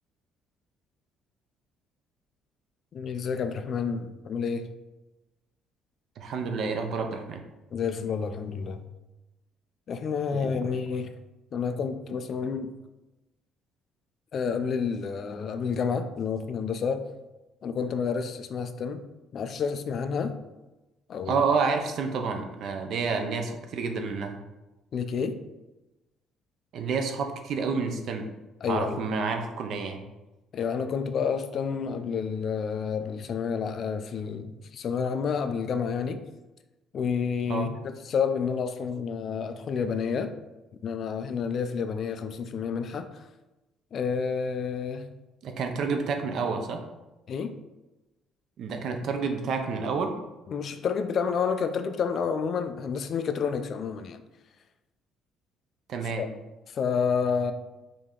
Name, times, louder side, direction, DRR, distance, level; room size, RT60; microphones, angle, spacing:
voice 1, 2.9-4.7 7.7-8.8 9.9-11.1 11.5-12.7 14.3-17.0 17.6-19.0 19.3-20.4 21.1-21.4 24.9-25.4 28.6-29.0 30.5-36.2 36.9-37.8 38.1-40.3 40.8-43.2 43.9-45.1 47.3-47.6 50.5-54.2 56.2-56.3 56.7-57.5, left 6 dB, 40° left, 9 dB, 0.3 m, -29 dB
voice 2, 6.2-7.4 10.3-10.5 21.3-24.3 26.7-28.3 28.7-30.0 37.5-37.7 45.4-46.8 48.6-50.1 55.9-56.3, right 5 dB, 50° right, 5 dB, 0.6 m, -29 dB
5.1 x 2.8 x 3.7 m, 1.0 s
cardioid pair, 155°, 0 cm